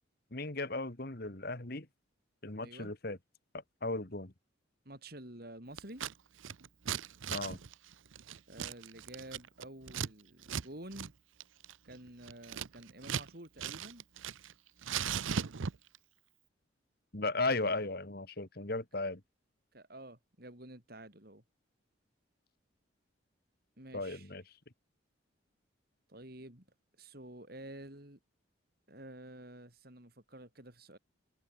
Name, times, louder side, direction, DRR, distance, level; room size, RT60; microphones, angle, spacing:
voice 1, 0.3-1.9 2.4-3.2 3.8-4.3 7.3-7.6 17.1-19.2 23.9-24.4, left 2 dB, 50° left, 1.9 m, -36 dB
voice 2, 2.6-2.9 4.8-6.0 8.5-11.1 11.8-14.0 19.7-21.4 23.8-24.3 26.1-26.7 27.0-28.2 28.9-31.0, right 1 dB, 50° right, 4.4 m, -50 dB
Scissors, 5.8-6.1 6.4-10.1 10.4-10.7 10.9-11.1 11.4-13.3 13.6-14.5 14.8-16.0, right 7 dB, 80° right, 0.7 m, -38 dB
head